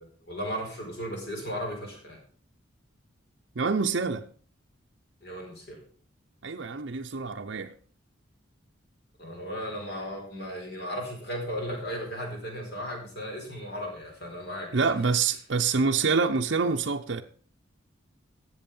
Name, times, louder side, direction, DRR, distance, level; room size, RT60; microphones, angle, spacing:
voice 1, 0.2-2.2 5.2-5.8 9.2-15.5, equal, 55° left, 4.6 m, -36 dB
voice 2, 3.6-4.2 6.4-7.7 14.7-17.2, right 4 dB, 60° right, 0.6 m, -26 dB
13.0 x 7.8 x 5.4 m
head